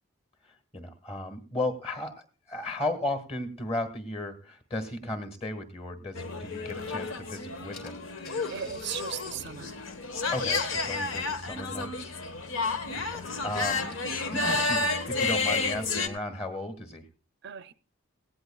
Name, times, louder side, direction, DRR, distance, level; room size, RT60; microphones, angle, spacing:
voice 1, 0.4-2.2 2.5-8.0 10.3-12.1 12.9-13.9 14.3-17.0, left 1 dB, 30° left, 8 dB, 1.6 m, -35 dB
sound 1, 6.1-16.1, left 3 dB, 75° left, 1.3 m, -31 dB
Car / Engine, 7.2-7.3 7.7-15.2, left 3 dB, 45° left, 3.4 m, -54 dB
voice 2, 8.5-9.7 17.4-17.7, right 9 dB, 55° right, 12 dB, 0.5 m, -37 dB
17.5 x 16.5 x 2.3 m, 0.38 s
head